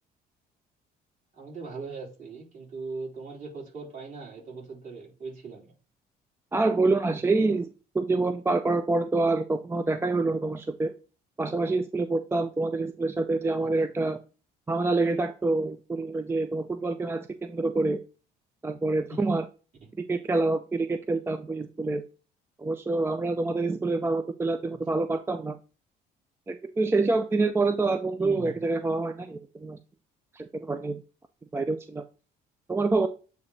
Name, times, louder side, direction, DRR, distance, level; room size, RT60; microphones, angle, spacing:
voice 1, 1.3-5.7 13.6-13.7 19.1-19.2 28.2-28.6, right 3 dB, 50° right, -3 dB, 3.5 m, -40 dB
voice 2, 6.5-10.9 11.4-14.2 14.7-18.0 18.6-19.5 20.1-22.0 22.6-25.6 26.5-29.8 30.3-31.0 31.5-32.0 32.7-33.1, right 3 dB, 15° right, 8 dB, 0.4 m, -26 dB
8.2 x 2.9 x 4.0 m, 0.34 s
cardioid pair, 110°, 17 cm